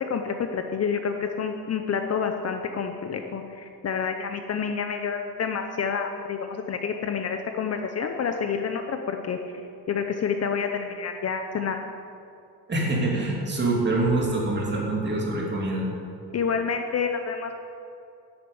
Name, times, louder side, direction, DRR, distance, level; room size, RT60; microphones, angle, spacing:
voice 1, 0.0-9.4 9.9-11.8 16.3-17.5, left 6 dB, 40° left, 5 dB, 0.7 m, -28 dB
voice 2, 12.7-15.9, right 2 dB, 25° right, -2 dB, 2.8 m, -25 dB
12.0 x 8.8 x 8.6 m, 2.6 s
cardioid pair, 175°, 40 cm